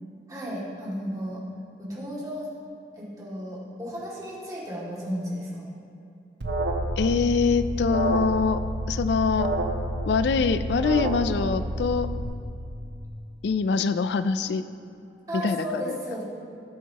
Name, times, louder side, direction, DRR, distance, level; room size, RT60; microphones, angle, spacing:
voice 1, 0.3-1.4 1.8-2.5 2.9-5.7 15.1-16.2, equal, 20° right, -7 dB, 2.3 m, -34 dB
Alarm, 6.4-12.2, right 1 dB, 80° right, 0.9 m, -29 dB
voice 2, 7.0-8.6 8.9-9.5 10.1-12.1 13.4-14.7 15.3-16.0, left 5 dB, 70° left, 11 dB, 0.4 m, -24 dB
17.5 x 7.4 x 2.9 m, 2.5 s
head